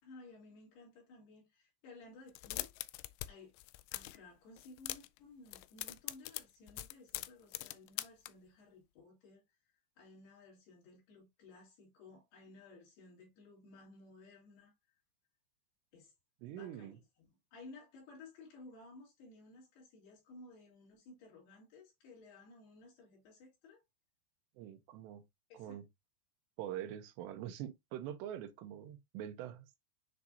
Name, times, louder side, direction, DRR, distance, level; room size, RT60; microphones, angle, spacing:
voice 1, 0.0-2.7 3.3-3.5 3.9-9.4 10.0-14.7 15.9-16.1 16.5-23.8 25.5-25.8, left 3 dB, 70° left, 5.3 m, -57 dB
sound 1, 2.3-3.3 3.5-4.2 4.6-5.2 5.5-8.3, left 18 dB, 85° left, 2.6 m, -42 dB
voice 2, 16.4-17.0 24.6-25.2 25.5-25.9 26.6-29.7, right 11 dB, 80° right, 2.9 m, -44 dB
9.8 x 3.6 x 2.7 m
omnidirectional pair, 5.0 m